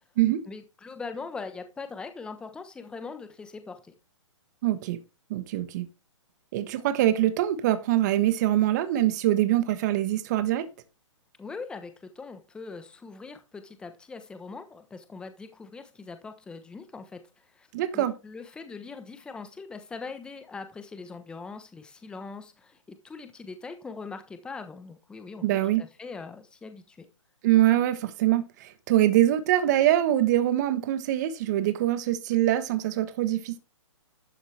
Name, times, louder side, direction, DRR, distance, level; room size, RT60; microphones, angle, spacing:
voice 1, 0.5-3.9 11.4-17.7 17.9-27.1, left 4 dB, 5° left, 1.0 m, -41 dB
voice 2, 4.6-5.0 5.3-5.9 6.5-10.7 17.7-18.1 25.4-25.8 27.4-33.6, right 13 dB, 35° right, 1.4 m, -24 dB
12.0 x 7.3 x 3.4 m
hypercardioid pair, 160°, 16 cm